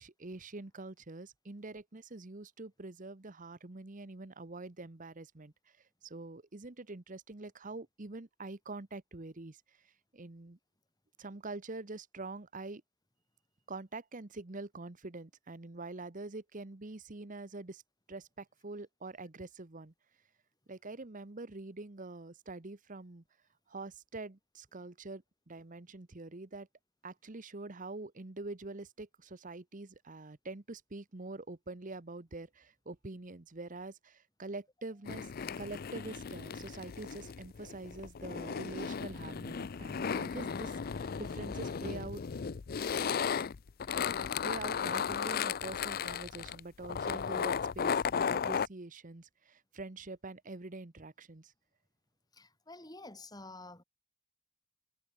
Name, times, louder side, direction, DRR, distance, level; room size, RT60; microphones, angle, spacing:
voice 1, 0.0-5.5 6.0-9.6 10.1-10.6 11.2-12.8 13.7-17.8 18.1-19.9 20.7-23.2 23.7-26.7 27.0-35.3 35.6-42.2 44.2-51.5, right 2 dB, 35° right, 1.0 m, -45 dB
sound 1, 35.1-48.7, left 6 dB, 45° left, 0.4 m, -35 dB
voice 2, 52.3-53.8, left 2 dB, 20° left, 6.8 m, -49 dB
head